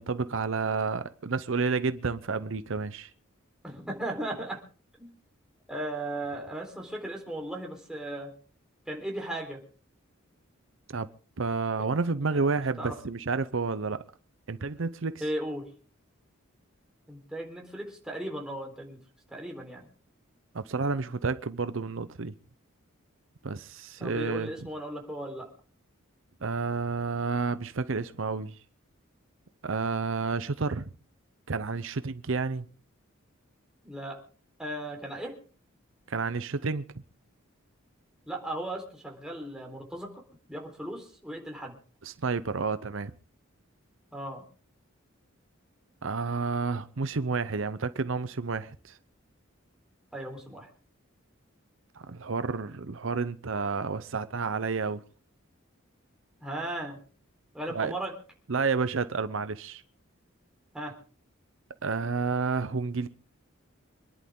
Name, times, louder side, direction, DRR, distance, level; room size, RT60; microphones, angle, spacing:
voice 1, 0.0-3.1 10.9-11.1 11.4-14.0 14.5-15.2 20.5-22.3 23.4-24.5 26.4-28.6 29.6-30.9 31.5-32.7 36.1-36.8 42.0-43.1 46.0-49.0 52.0-55.0 57.7-57.9 58.5-59.8 61.8-63.1, right 4 dB, 65° right, 0.7 m, -30 dB
voice 2, 3.6-4.6 5.0-5.1 5.7-8.3 8.9-9.6 12.3-12.9 15.2-15.7 17.1-19.0 19.3-19.8 24.0-25.5 33.8-34.2 34.6-35.4 38.3-40.2 40.5-41.7 44.1-44.4 50.1-50.7 56.4-57.0 57.5-58.1 60.7-60.9, right 1 dB, 5° right, 4.0 m, -36 dB
26.0 x 11.0 x 3.8 m
head